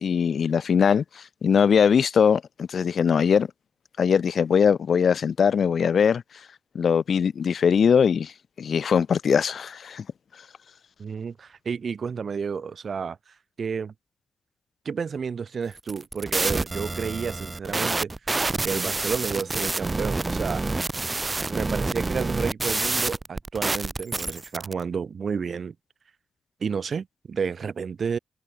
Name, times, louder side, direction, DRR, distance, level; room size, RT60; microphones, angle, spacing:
voice 1, 0.0-3.5 4.0-6.2 6.7-8.3 8.6-10.0, left 7 dB, 65° left, 0.7 m, -21 dB
voice 2, 11.0-13.2 13.6-13.9 14.8-20.6 21.5-25.7 26.6-28.2, right 6 dB, 60° right, 2.7 m, -31 dB
sound 1, 15.8-24.7, right 3 dB, 30° right, 3.7 m, -28 dB
cardioid pair, 60°, 0 cm